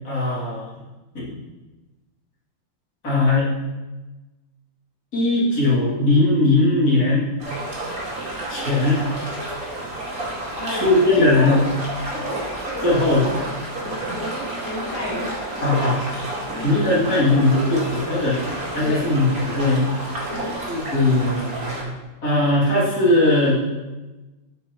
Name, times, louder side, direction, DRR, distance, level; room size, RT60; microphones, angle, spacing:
voice 1, 0.0-0.7 1.1-1.3 3.0-3.5 5.1-7.3 8.5-9.0 10.7-11.6 12.8-13.2 15.6-16.1 16.5-18.4 18.7-19.9 20.7-21.9 22.2-23.6, left 2 dB, 50° left, -8 dB, 3.4 m, -19 dB
sound 1, 7.4-21.8, right 1 dB, 45° right, 2.5 m, -30 dB
voice 2, 10.6-11.7 12.1-15.3 16.5-16.7 18.8-19.1 20.3-20.6, equal, 75° left, -6 dB, 2.9 m, -31 dB
10.5 x 8.2 x 3.1 m, 1.1 s
omnidirectional pair, 2.1 m